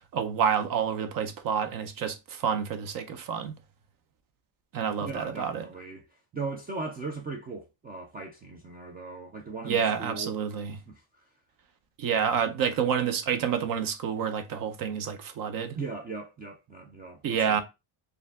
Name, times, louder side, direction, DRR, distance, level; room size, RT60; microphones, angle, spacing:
voice 1, 0.1-3.6 4.7-5.6 9.6-10.8 12.0-15.8 17.2-17.6, right 7 dB, 45° right, 0.7 m, -28 dB
voice 2, 5.0-11.3 15.7-17.6, right 3 dB, 20° right, 0.3 m, -39 dB
4.5 x 2.7 x 3.5 m
cardioid pair, 165°, 47 cm